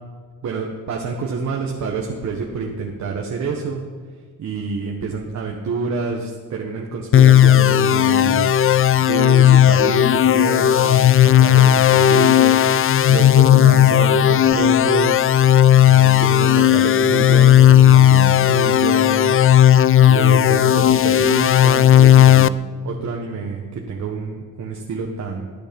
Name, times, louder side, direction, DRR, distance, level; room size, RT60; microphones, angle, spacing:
voice 1, 0.4-3.8 4.4-15.3 15.8-19.3 20.1-22.5 22.8-25.5, right 4 dB, 60° right, 0 dB, 1.6 m, -27 dB
sound 1, 7.1-22.5, left 10 dB, 45° left, 0.4 m, -13 dB
19.0 x 11.0 x 5.4 m, 1.5 s
cardioid pair, 125°, 32 cm